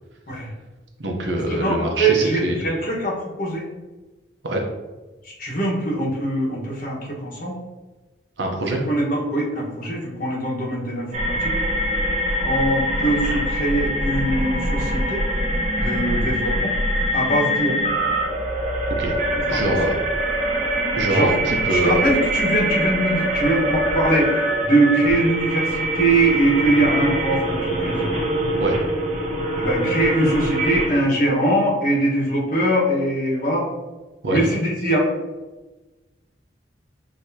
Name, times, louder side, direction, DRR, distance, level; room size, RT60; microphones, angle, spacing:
voice 1, 1.0-2.6 4.4-4.6 8.4-8.8 19.0-19.2 19.5-20.0 20.9-22.0 28.6-28.8 34.2-34.4, right 1 dB, 75° right, 2 dB, 0.8 m, -24 dB
voice 2, 1.6-3.6 5.2-7.5 8.7-11.5 12.4-15.2 15.8-16.7 17.1-17.8 19.5-19.7 21.1-21.3 21.7-28.1 29.6-33.7 34.3-35.1, right 1 dB, 50° left, -4 dB, 1.3 m, -22 dB
sound 1, 11.1-30.9, right 1 dB, 40° right, 0.9 m, -23 dB
6.4 x 2.8 x 2.8 m, 1.2 s
head